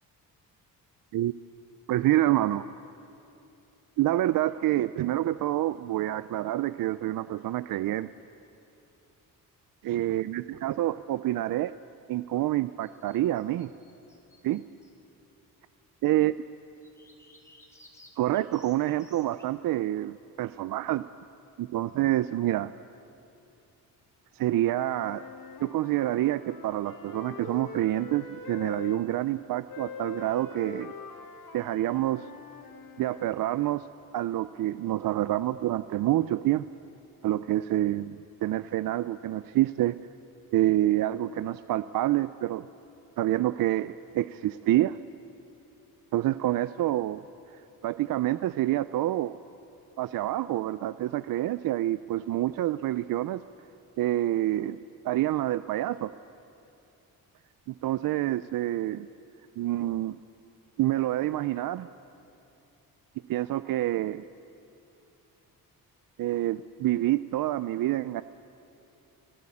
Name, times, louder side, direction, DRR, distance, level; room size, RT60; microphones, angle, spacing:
voice 1, 1.9-2.7 4.0-8.1 9.8-11.7 12.1-13.7 14.4-14.6 16.0-16.3 18.2-21.0 21.6-22.7 24.3-25.2 25.6-30.9 31.5-32.3 33.0-33.9 34.1-36.6 37.2-40.0 40.5-42.7 43.2-45.0 46.1-47.2 47.8-49.4 50.0-53.4 54.0-56.1 57.7-59.1 59.6-60.2 60.8-61.9 63.3-64.3 66.2-68.2, right 14 dB, 70° right, 14 dB, 0.5 m, -27 dB
sound 1, 12.8-14.9 16.8-19.5, left 1 dB, 10° left, 2.3 m, -57 dB
Wind instrument woodwind instrument, 24.6-29.0 29.7-33.4, left 6 dB, 65° left, 2.2 m, -44 dB
27.5 x 16.0 x 8.6 m, 2.8 s
cardioid pair, 145°, 36 cm